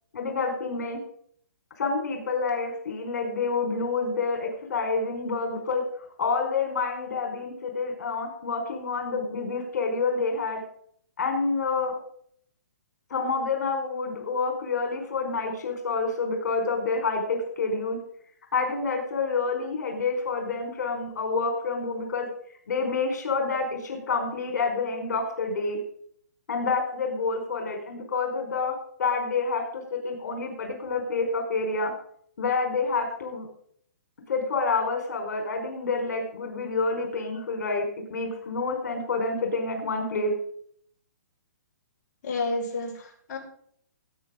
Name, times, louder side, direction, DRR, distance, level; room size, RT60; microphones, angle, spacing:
voice 1, 0.1-1.0 1.8-5.8 6.2-10.6 11.2-11.9 13.1-18.0 18.5-22.3 22.7-25.8 26.5-28.7 29.0-31.9 32.4-33.5 34.3-40.3, left 4 dB, 65° left, 3 dB, 4.6 m, -28 dB
voice 2, 42.2-43.4, left 3 dB, 30° left, -4 dB, 5.5 m, -30 dB
18.5 x 9.2 x 3.8 m, 0.62 s
hypercardioid pair, 160°, 10 cm